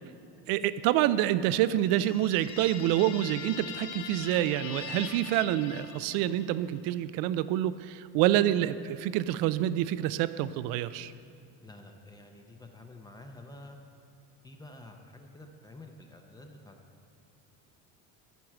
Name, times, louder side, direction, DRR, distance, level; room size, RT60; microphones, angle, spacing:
voice 1, 0.5-11.1, right 13 dB, 60° right, 15 dB, 0.5 m, -27 dB
sound 1, 1.8-6.6, left 8 dB, 45° left, 0.7 m, -42 dB
voice 2, 11.6-13.8 14.4-16.8, left 2 dB, 10° left, 4 dB, 0.5 m, -49 dB
13.5 x 4.6 x 7.3 m, 2.7 s
cardioid pair, 155°, 39 cm